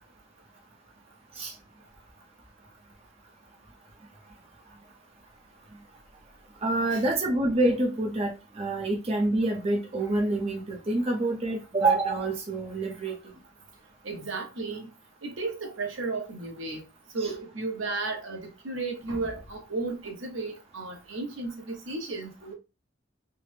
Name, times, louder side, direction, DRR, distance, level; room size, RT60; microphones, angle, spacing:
voice 1, 6.6-13.2 17.2-17.3, right 2 dB, 30° right, 0.6 m, -27 dB
voice 2, 14.0-14.9 15.2-16.8 17.1-22.5, right 3 dB, 80° right, 1.0 m, -34 dB
3.3 x 2.0 x 3.1 m
head